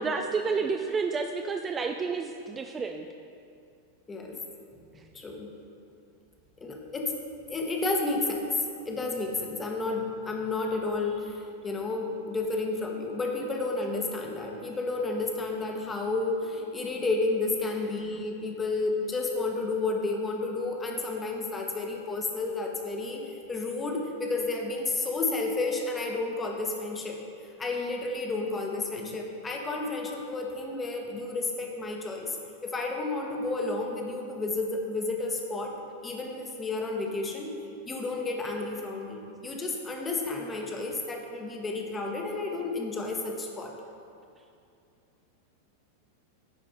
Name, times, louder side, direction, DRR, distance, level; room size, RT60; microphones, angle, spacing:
voice 1, 0.0-3.1, right 4 dB, 20° right, 5 dB, 0.4 m, -30 dB
voice 2, 5.1-5.5 6.6-7.1 7.5-8.5 8.8-27.2 27.6-32.4 32.6-35.7 36.0-37.6 37.9-43.7, left 3 dB, 15° left, 1 dB, 1.1 m, -31 dB
10.0 x 4.9 x 5.0 m, 2.4 s
figure-of-eight pair, 90°, 0 cm